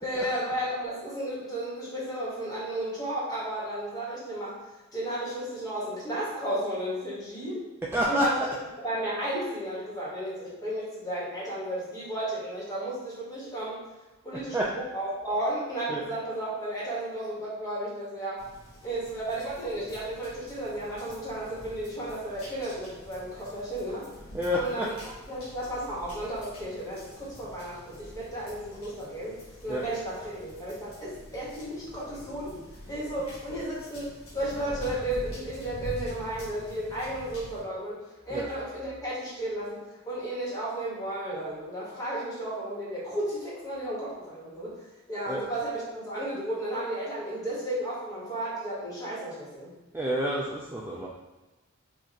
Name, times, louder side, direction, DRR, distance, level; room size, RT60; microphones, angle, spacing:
voice 1, 0.0-4.6 4.9-7.6 8.1-8.4 8.8-13.8 14.2-18.4 18.8-24.0 24.6-29.4 29.6-32.6 32.9-39.8 40.0-49.7, right 1 dB, 15° left, -6 dB, 1.3 m, -33 dB
voice 2, 7.9-8.3 14.5-14.7 15.9-16.0 24.3-24.9 29.7-29.8 38.3-38.5 45.3-45.4 49.9-51.1, equal, 10° right, -4 dB, 0.3 m, -28 dB
sound 1, 18.4-37.6, equal, 85° left, 1.5 m, -46 dB
5.1 x 2.5 x 2.9 m, 1.1 s
head